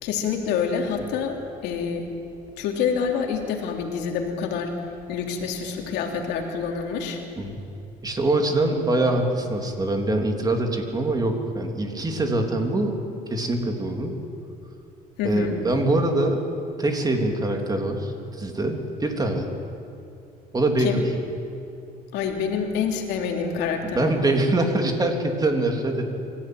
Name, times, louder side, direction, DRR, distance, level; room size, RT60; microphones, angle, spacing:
voice 1, 0.0-2.1 2.6-4.8 5.1-7.2 15.2-15.6 20.8-21.0 22.1-24.2, left 6 dB, 90° left, 2 dB, 3.2 m, -27 dB
voice 2, 8.0-14.2 15.2-16.4 16.8-19.5 20.5-21.0 23.9-26.0, right 2 dB, 20° right, 3 dB, 3.2 m, -24 dB
25.0 x 15.5 x 9.5 m, 2.7 s
cardioid pair, 110°, 17 cm